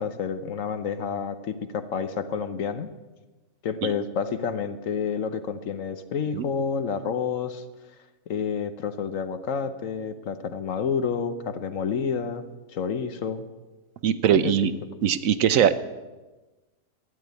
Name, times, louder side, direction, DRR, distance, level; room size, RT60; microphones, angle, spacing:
voice 1, 0.0-2.9 3.6-7.6 8.3-12.4 12.7-13.4 14.3-14.5, left 6 dB, 65° left, 10 dB, 1.2 m, -29 dB
voice 2, 14.0-14.7 15.0-15.8, right 9 dB, 70° right, 13 dB, 1.0 m, -21 dB
13.0 x 8.5 x 9.4 m, 1.2 s
omnidirectional pair, 1.6 m